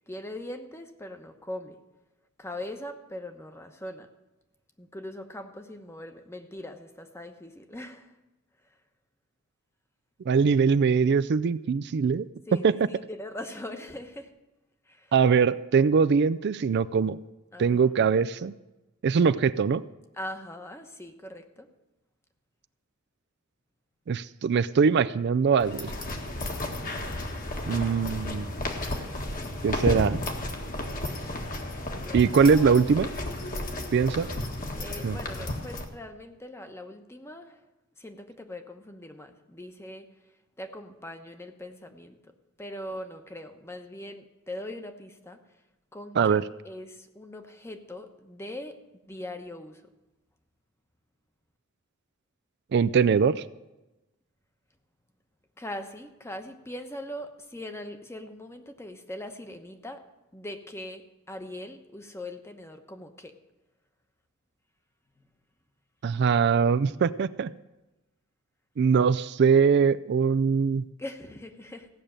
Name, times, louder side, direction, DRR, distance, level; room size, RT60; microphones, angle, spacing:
voice 1, 0.1-1.8 2.4-4.1 4.8-8.1 12.5-14.3 14.9-15.1 17.5-17.9 20.1-21.7 31.9-32.9 34.8-37.6 38.0-40.1 40.6-42.3 42.6-45.4 45.9-48.8 49.1-49.8 55.6-60.0 60.3-63.3 71.0-71.9, left 1 dB, 15° left, 6 dB, 1.0 m, -41 dB
voice 2, 10.3-12.3 12.6-12.7 15.1-17.2 17.6-18.5 19.0-19.8 24.1-25.9 27.7-28.5 29.6-30.2 32.1-33.1 33.9-34.3 35.0-35.2 46.2-46.4 52.7-53.4 66.0-67.5 68.8-70.8, right 6 dB, 55° right, 13 dB, 0.4 m, -22 dB
sound 1, 25.6-35.9, left 1 dB, 45° left, 1.6 m, -33 dB
16.0 x 6.6 x 8.8 m, 1.0 s
head